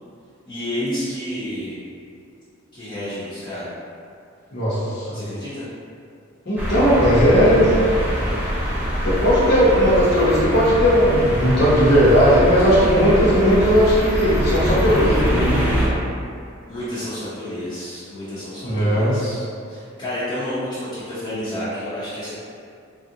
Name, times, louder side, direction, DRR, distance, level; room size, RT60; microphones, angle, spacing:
voice 1, 0.5-1.8 2.7-3.7 5.1-5.7 16.7-22.3, left 1 dB, 25° left, -13 dB, 0.7 m, -30 dB
voice 2, 4.5-5.2 6.5-7.7 9.0-15.6 18.6-19.1, equal, 55° left, -10 dB, 0.9 m, -17 dB
sound 1, 6.6-15.9, equal, 10° right, 0.6 m, -23 dB
3.3 x 2.4 x 2.7 m, 2.4 s
head